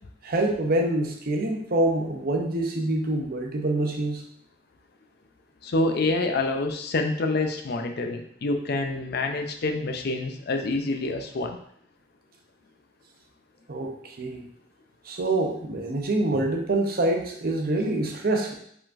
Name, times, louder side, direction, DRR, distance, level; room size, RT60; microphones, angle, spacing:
voice 1, 0.2-4.2 13.7-14.4 15.0-18.5, right 2 dB, 50° right, 3 dB, 0.7 m, -26 dB
voice 2, 5.6-11.6, left 2 dB, 55° left, 5 dB, 0.5 m, -27 dB
4.9 x 3.8 x 2.5 m, 0.67 s
head